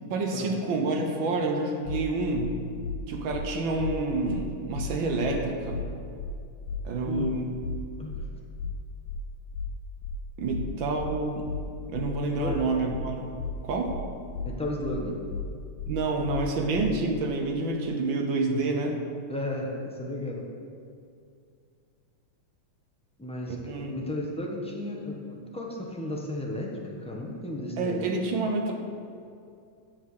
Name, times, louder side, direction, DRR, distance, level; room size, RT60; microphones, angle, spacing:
voice 1, 0.1-2.6 3.1-5.8 6.8-7.5 10.4-11.5 11.9-13.3 13.6-14.0 15.9-19.0 23.5-23.9 27.8-28.7, right 3 dB, 65° right, 3 dB, 1.7 m, -28 dB
sound 1, 1.9-2.0 2.3-2.5 2.8-3.0 3.3-3.5 3.8-3.9 4.3-4.4 4.7-4.9 5.2-5.4 5.7-5.9 6.2-6.3 6.7-6.8 7.1-7.3 7.6-7.8 8.1-8.3 8.6-8.7 9.1-9.2 9.5-9.7 10.0-10.2 10.5-10.7 11.0-11.1 11.5-11.6 11.9-12.1 12.4-12.6 12.9-13.1 13.4-13.5 13.9-14.0 14.3-14.5 14.8-15.0 15.3-15.5 15.8-15.9 16.3-16.4 16.7-16.9, left 5 dB, 80° left, 1.5 m, -34 dB
voice 2, 7.0-7.4 8.0-8.3 12.4-12.7 14.4-15.1 19.3-20.5 23.2-28.1, left 1 dB, 10° left, -2 dB, 0.4 m, -34 dB
7.7 x 7.2 x 6.6 m, 2.4 s
omnidirectional pair, 2.4 m